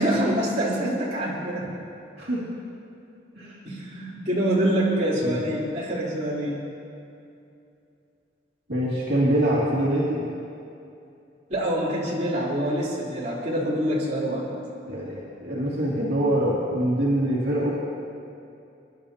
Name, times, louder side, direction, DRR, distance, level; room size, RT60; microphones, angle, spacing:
voice 1, 0.0-1.7 3.6-6.6 11.5-14.5, right 1 dB, 40° right, -8 dB, 3.3 m, -25 dB
voice 2, 8.7-10.2 14.9-17.7, right 1 dB, 65° right, -8 dB, 2.5 m, -24 dB
23.5 x 11.5 x 2.9 m, 2.6 s
head